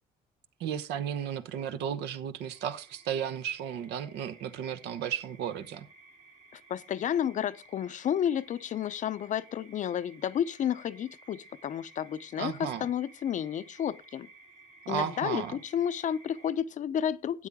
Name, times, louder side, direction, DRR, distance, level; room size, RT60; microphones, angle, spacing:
voice 1, 0.6-5.9 12.4-12.9 14.8-15.6, right 9 dB, 80° right, 1.1 m, -34 dB
sound 1, 2.5-16.5, right 2 dB, 40° right, 2.2 m, -56 dB
voice 2, 6.5-14.3 14.9-17.5, left 9 dB, 50° left, 0.6 m, -31 dB
12.5 x 8.7 x 3.6 m
cardioid pair, 110°, 17 cm